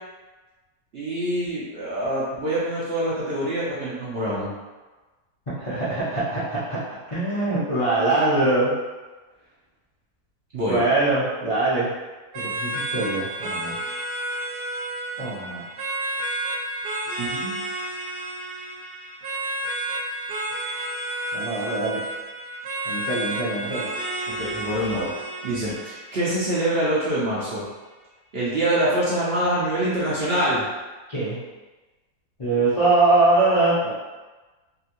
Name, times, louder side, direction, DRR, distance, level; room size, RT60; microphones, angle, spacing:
voice 1, 0.9-4.5 10.5-10.8 17.2-17.6 24.3-25.1 25.4-27.6 28.3-30.6, right 1 dB, 55° right, -8 dB, 0.7 m, -25 dB
voice 2, 5.5-6.8 7.1-8.7 10.7-11.9 12.3-13.8 15.2-15.6 21.3-22.0 22.8-23.9 31.1-31.4 32.4-33.9, right 2 dB, 45° left, -12 dB, 0.4 m, -22 dB
sound 1, 12.3-27.3, right 1 dB, 90° right, 1.1 m, -31 dB
2.9 x 2.7 x 2.5 m, 1.2 s
omnidirectional pair, 1.6 m